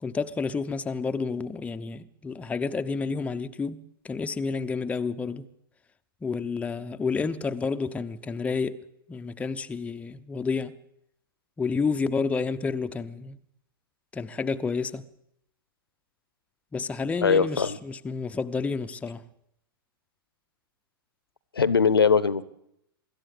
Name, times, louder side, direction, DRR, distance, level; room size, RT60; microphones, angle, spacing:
voice 1, 0.0-5.5 6.2-8.8 9.1-10.8 11.6-13.4 14.1-15.1 16.7-19.2, left 4 dB, 10° left, 0.8 m, -30 dB
voice 2, 17.2-17.8 21.6-22.4, left 5 dB, 75° left, 1.1 m, -21 dB
24.5 x 13.5 x 8.6 m
figure-of-eight pair, 100°, 12 cm